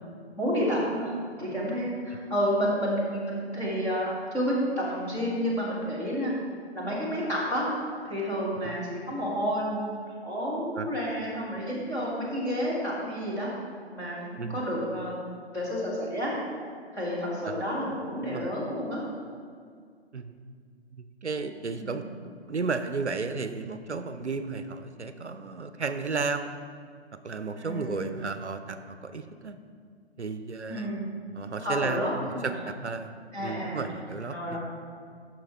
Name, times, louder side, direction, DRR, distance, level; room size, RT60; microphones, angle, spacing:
voice 1, 0.4-1.1 1.4-6.3 6.7-7.7 8.0-9.9 10.2-13.5 13.9-15.2 15.5-16.3 16.9-19.0 21.8-22.1 27.6-28.2 30.7-31.1 31.5-32.5 33.3-33.9 34.3-34.6, equal, 10° left, -9 dB, 1.4 m, -30 dB
voice 2, 20.9-22.0 22.5-26.5 27.2-29.6 30.2-30.9 31.4-32.1 32.4-34.6, right 4 dB, 85° right, 10 dB, 0.6 m, -33 dB
9.8 x 6.3 x 3.5 m, 2.1 s
figure-of-eight pair, 135°, 33 cm